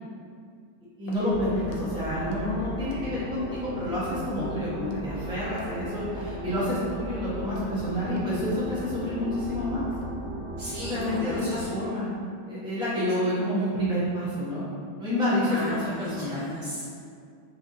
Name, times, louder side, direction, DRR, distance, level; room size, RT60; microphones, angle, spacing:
voice 1, 1.0-9.9 10.8-12.1 12.5-14.7 15.0-16.5, left 1 dB, 5° right, -11 dB, 0.9 m, -29 dB
Walk footsteps, 1.1-1.3 1.7-1.8 2.3-2.4 2.8-3.1 3.5-3.7 4.2-4.3 4.9-5.1 5.5-5.7 6.2-6.3 6.8-7.0 7.4-7.7 8.1-8.2 8.7-8.9 9.3-9.5 9.9-10.1, left 3 dB, 75° left, 1.1 m, -46 dB
sound 1, 1.3-11.7, right 1 dB, 50° left, 1.6 m, -36 dB
voice 2, 10.6-11.7 15.4-16.9, equal, 65° right, -7 dB, 1.1 m, -35 dB
4.5 x 3.3 x 2.7 m, 2.2 s
omnidirectional pair, 1.9 m